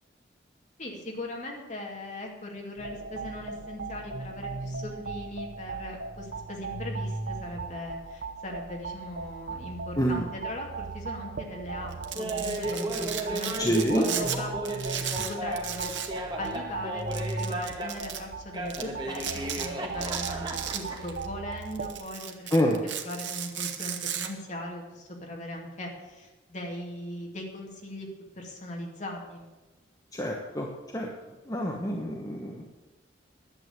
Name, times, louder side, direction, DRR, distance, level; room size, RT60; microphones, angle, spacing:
voice 1, 0.8-13.8 14.0-14.7 15.3-19.3 19.6-22.8 23.0-28.1 28.4-29.5, left 1 dB, 40° left, 0 dB, 2.4 m, -39 dB
sound 1, 2.8-21.9, right 3 dB, 65° right, 0.9 m, -38 dB
Domestic sounds home sounds, 11.9-14.4 14.7-16.2 16.4-16.6 17.1-18.2 18.7-18.8 19.2-19.7 20.0-21.3 21.6-24.3, right 9 dB, 85° right, 1.2 m, -35 dB
Laughter, 12.2-18.1 18.5-21.1, right 1 dB, 25° right, 1.4 m, -35 dB
voice 2, 13.6-14.1 22.5-22.8 30.1-30.7 30.9-31.1 31.5-32.6, equal, 20° left, -1 dB, 1.1 m, -26 dB
11.0 x 7.8 x 8.0 m, 1.2 s
head